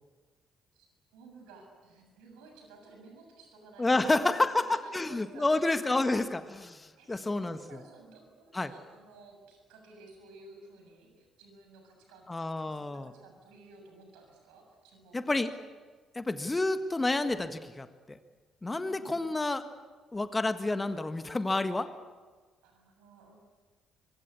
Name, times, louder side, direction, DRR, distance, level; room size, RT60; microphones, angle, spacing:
voice 1, 1.1-6.2 6.5-6.6 7.0-15.6 18.7-19.3 22.6-23.3, right 3 dB, 65° right, 3 dB, 7.2 m, -54 dB
voice 2, 3.8-7.6 8.5-8.7 12.3-13.1 15.1-15.5 16.1-18.2 18.6-19.6 20.1-21.9, left 2 dB, 20° left, 10 dB, 1.6 m, -29 dB
26.0 x 25.5 x 8.4 m, 1.4 s
figure-of-eight pair, 45°, 0 cm